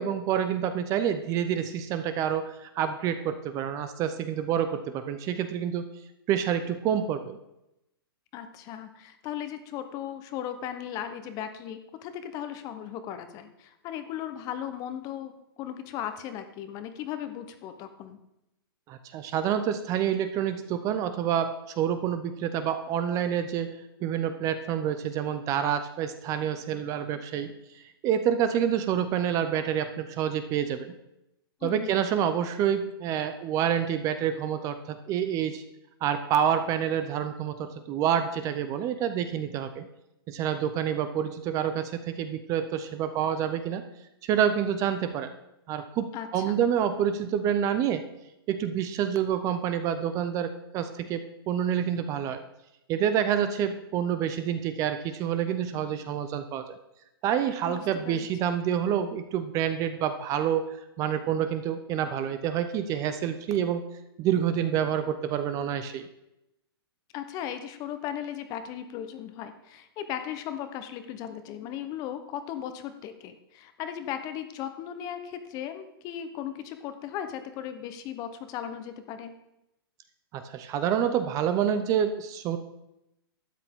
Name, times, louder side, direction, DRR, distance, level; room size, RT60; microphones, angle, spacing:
voice 1, 0.0-5.9 6.3-7.4 18.9-31.0 31.6-35.6 36.0-39.9 40.3-43.9 44.2-45.3 45.7-48.0 48.5-52.4 52.9-56.6 57.2-63.8 64.2-66.1 80.3-82.6, right 9 dB, 25° right, 10 dB, 0.6 m, -28 dB
voice 2, 8.3-18.2 31.6-32.0 46.1-46.6 57.7-58.3 67.1-79.3, left 10 dB, 30° left, 9 dB, 0.9 m, -37 dB
12.5 x 8.9 x 3.7 m, 0.87 s
hypercardioid pair, 145°, 13 cm